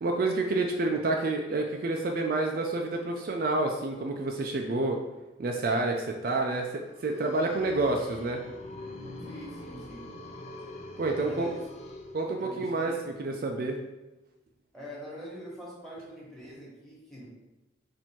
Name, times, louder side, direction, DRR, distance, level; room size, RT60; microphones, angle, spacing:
voice 1, 0.0-5.0 5.4-8.4 11.0-11.5 12.1-12.9 13.2-13.8, right 2 dB, 50° right, 2 dB, 0.4 m, -28 dB
sound 1, 6.9-12.8, left 2 dB, 40° left, 0.4 m, -44 dB
voice 2, 9.2-10.2 11.1-11.7 12.4-13.0 14.7-17.3, equal, ahead, -6 dB, 1.3 m, -44 dB
4.3 x 2.6 x 4.3 m, 1.1 s
head